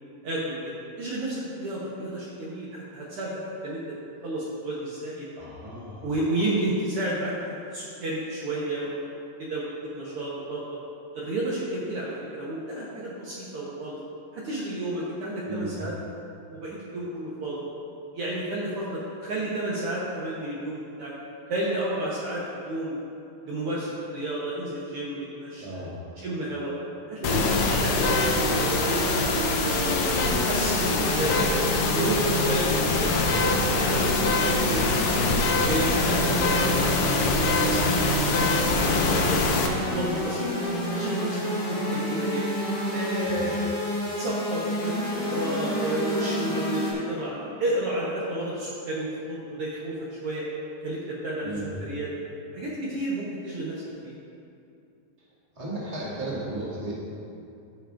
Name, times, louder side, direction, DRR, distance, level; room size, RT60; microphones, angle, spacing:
voice 1, 0.2-3.9 4.2-5.3 6.0-7.3 7.7-9.0 9.4-9.6 9.9-10.6 11.1-14.0 14.3-15.9 16.5-17.6 18.1-21.1 21.5-23.0 23.4-25.9 26.2-26.7 27.1-29.3 29.8-31.5 31.9-34.8 35.5-38.5 38.8-39.4 39.8-42.5 42.9-43.7 44.2-49.9 50.2-50.4 50.8-51.5 51.8-52.1 52.5-54.1, right 1 dB, 90° right, -7 dB, 1.2 m, -31 dB
voice 2, 5.3-6.1 15.4-15.8 25.6-26.0 35.2-35.6 43.2-43.6 51.4-51.8 55.5-56.9, right 1 dB, 15° right, -8 dB, 1.2 m, -35 dB
sound 1, 27.2-39.7, left 3 dB, 75° left, 2.2 m, -24 dB
sound 2, 27.9-46.9, equal, 40° left, 1.5 m, -29 dB
15.0 x 5.7 x 2.5 m, 2.6 s
omnidirectional pair, 4.0 m